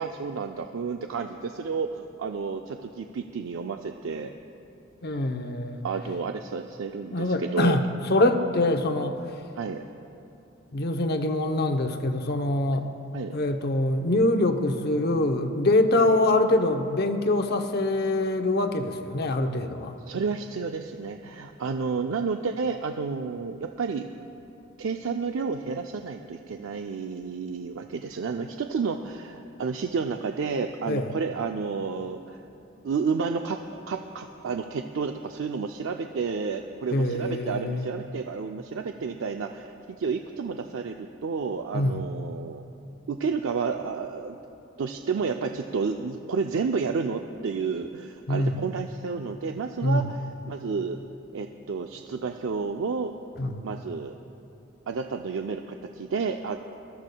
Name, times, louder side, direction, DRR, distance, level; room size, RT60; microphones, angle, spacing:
voice 1, 0.0-4.3 5.8-7.8 8.5-8.6 9.6-9.8 13.1-13.3 16.0-16.2 20.1-24.1 24.8-32.4 32.8-33.6 33.9-39.7 40.0-42.6 43.1-44.4 44.8-50.2 50.5-51.0 51.3-53.1 53.6-54.1 54.9-56.6, right 5 dB, 80° right, 5 dB, 0.4 m, -31 dB
voice 2, 5.0-5.8 7.1-9.2 10.7-12.9 13.3-19.9 30.9-31.1 36.9-37.9 41.7-42.0 48.3-48.6 49.8-50.1 53.4-53.7, left 2 dB, 55° left, 6 dB, 0.7 m, -24 dB
22.0 x 13.5 x 2.3 m, 2.8 s
head